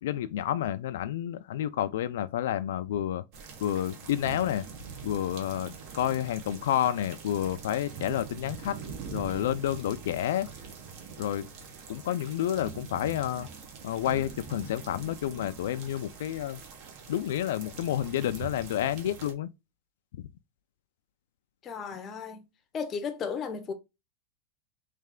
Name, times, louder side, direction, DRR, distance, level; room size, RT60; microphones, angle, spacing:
voice 1, 0.0-3.2 3.6-4.7 5.0-8.8 9.1-10.5 11.2-11.5 11.9-13.5 13.8-16.6 17.1-19.5, left 11 dB, 75° left, 0.3 m, -30 dB
sound 1, 3.3-19.3, right 6 dB, 45° right, 1.1 m, -44 dB
voice 2, 21.6-22.5 22.7-23.7, left 6 dB, 20° left, 0.6 m, -34 dB
3.3 x 3.2 x 3.6 m
supercardioid pair, 160°, 0 cm